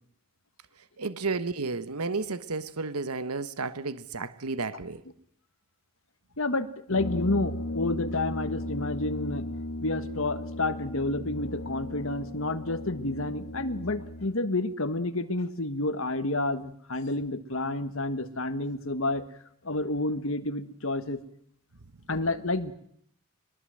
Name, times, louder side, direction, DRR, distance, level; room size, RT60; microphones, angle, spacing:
voice 1, 1.0-5.0, right 4 dB, 90° right, 1.2 m, -32 dB
voice 2, 6.4-9.5 9.8-19.2 19.6-21.2 22.1-22.7, left 2 dB, 65° left, 1.6 m, -30 dB
Brass instrument, 6.9-14.4, left 1 dB, 80° left, 1.5 m, -36 dB
23.0 x 22.0 x 7.7 m
head